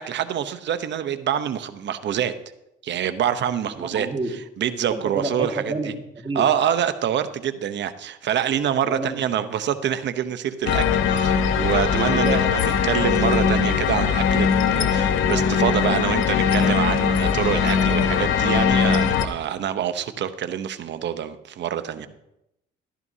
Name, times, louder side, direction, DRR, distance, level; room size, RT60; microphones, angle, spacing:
voice 1, 0.0-2.3 2.8-4.1 4.6-5.7 6.4-22.1, right 9 dB, 65° right, 11 dB, 0.8 m, -26 dB
voice 2, 3.8-4.3 4.9-6.5 8.8-9.2 11.9-12.4, right 2 dB, 25° right, 1 dB, 1.9 m, -29 dB
sound 1, 10.7-19.3, left 7 dB, 80° left, 0.8 m, -20 dB
14.0 x 12.0 x 2.8 m, 0.85 s
cardioid pair, 90°, 20 cm